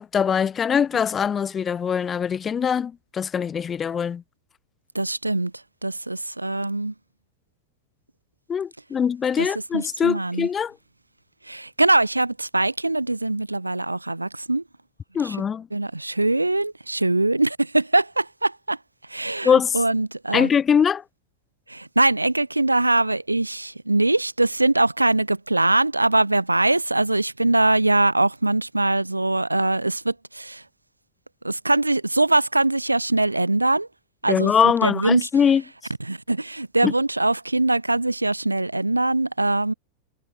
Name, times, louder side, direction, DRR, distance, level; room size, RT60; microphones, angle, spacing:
voice 1, 0.0-4.2 8.5-10.8 15.1-15.7 19.4-19.8 20.3-21.0 34.3-35.6 36.8-36.9, left 7 dB, 20° left, 1.7 m, -22 dB
voice 2, 4.9-5.5 5.8-6.9 9.4-9.5 9.7-10.5 11.5-14.6 15.2-15.4 15.7-18.8 19.1-20.5 21.7-30.6 31.4-33.9 34.2-35.3 36.1-39.7, right 2 dB, 85° right, 1.2 m, -22 dB
figure-of-eight pair, 90°, 0 cm